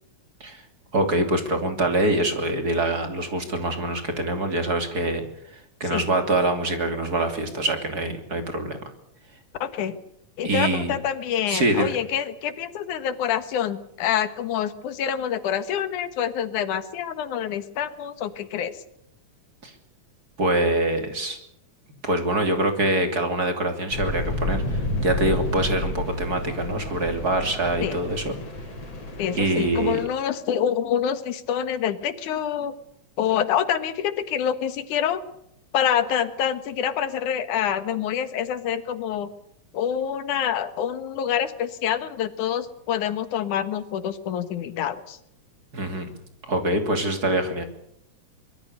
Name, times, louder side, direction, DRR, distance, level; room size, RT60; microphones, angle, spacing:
voice 1, 0.9-5.2 5.8-8.8 10.4-11.0 11.5-11.9 19.6-19.7 20.4-21.4 22.0-28.4 29.3-30.0 45.7-46.1 46.4-47.6, right 1 dB, 30° right, 6 dB, 3.3 m, -24 dB
voice 2, 9.6-10.0 10.4-18.8 27.8-28.0 29.2-32.7 33.2-35.2 35.7-39.3 39.7-45.2, left 9 dB, 85° left, 12 dB, 2.9 m, -26 dB
sound 1, 23.9-30.0, left 1 dB, 55° left, 7.3 m, -30 dB
24.5 x 22.0 x 6.7 m, 0.74 s
omnidirectional pair, 3.4 m